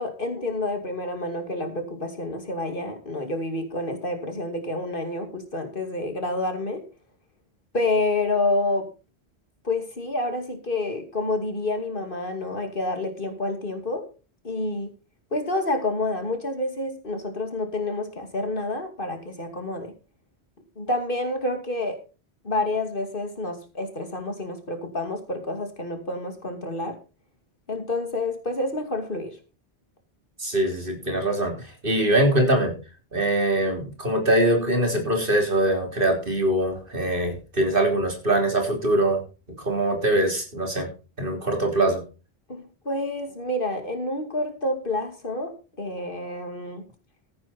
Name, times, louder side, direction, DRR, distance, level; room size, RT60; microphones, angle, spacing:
voice 1, 0.0-6.8 7.7-8.9 9.6-14.1 14.4-14.9 15.3-19.9 20.8-22.0 22.4-27.0 27.7-29.4 42.5-45.5 45.8-46.8, left 2 dB, 55° left, 6 dB, 2.7 m, -28 dB
voice 2, 30.4-31.6 31.8-32.7 33.1-39.2 39.6-40.9 41.2-42.0, right 1 dB, 55° right, 3 dB, 3.7 m, -23 dB
14.5 x 9.5 x 4.4 m, 0.32 s
omnidirectional pair, 1.1 m